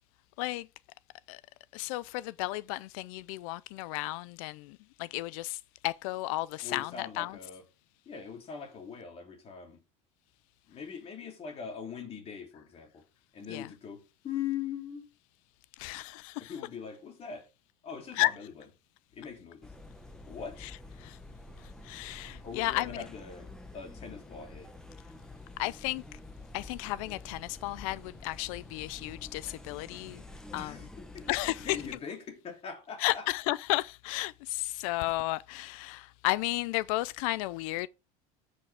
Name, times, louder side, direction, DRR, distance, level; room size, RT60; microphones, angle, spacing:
voice 1, 1.7-7.4 13.5-13.7 15.8-16.5 18.1-18.3 20.6-20.7 21.0-21.2 21.8-23.0 25.6-26.0 26.5-30.2 30.5-30.8 31.3-31.8 33.0-37.9, left 19 dB, 80° left, 0.5 m, -33 dB
voice 2, 6.6-7.6 8.1-9.8 10.7-13.0 13.3-15.1 16.4-17.5 17.8-18.5 19.1-19.7 20.3-20.6 22.4-24.7 30.5-31.3 31.6-33.3, left 7 dB, 35° left, 2.8 m, -41 dB
sound 1, 19.6-32.0, left 2 dB, 5° left, 1.1 m, -48 dB
14.0 x 5.2 x 3.4 m
supercardioid pair, 130°, 17 cm